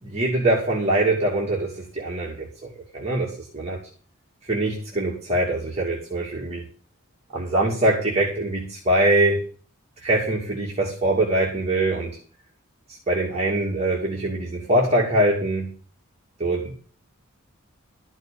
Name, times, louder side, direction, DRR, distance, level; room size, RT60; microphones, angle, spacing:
voice 1, 0.0-3.8 4.4-6.6 7.3-9.4 10.0-12.2 12.9-15.7 16.4-16.7, right 1 dB, 30° right, -4 dB, 2.6 m, -23 dB
13.0 x 6.5 x 7.1 m, 0.41 s
head